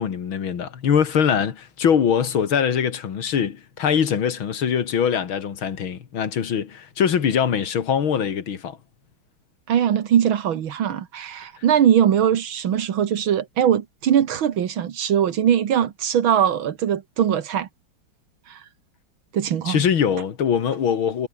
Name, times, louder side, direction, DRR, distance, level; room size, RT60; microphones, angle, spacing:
voice 1, 0.0-8.8 19.7-21.3, left 7 dB, 90° left, 2.7 m, -22 dB
voice 2, 9.7-17.7 18.5-18.6 19.3-19.8, right 9 dB, 85° right, 2.2 m, -21 dB
omnidirectional pair, 2.2 m